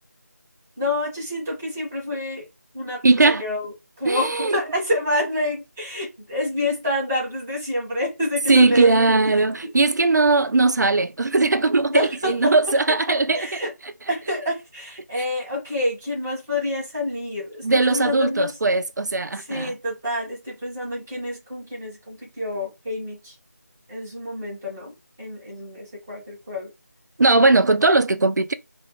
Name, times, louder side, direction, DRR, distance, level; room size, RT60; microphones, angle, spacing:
voice 1, 0.8-2.5 2.7-8.9 9.6-9.7 11.9-13.7 14.1-18.6 19.4-23.4 23.9-26.7, left 1 dB, 5° right, 0.4 m, -28 dB
voice 2, 3.0-3.4 4.1-4.5 8.5-13.4 17.6-19.7 27.2-28.5, right 3 dB, 80° right, 0.4 m, -19 dB
2.2 x 2.0 x 2.9 m
figure-of-eight pair, 165°, 9 cm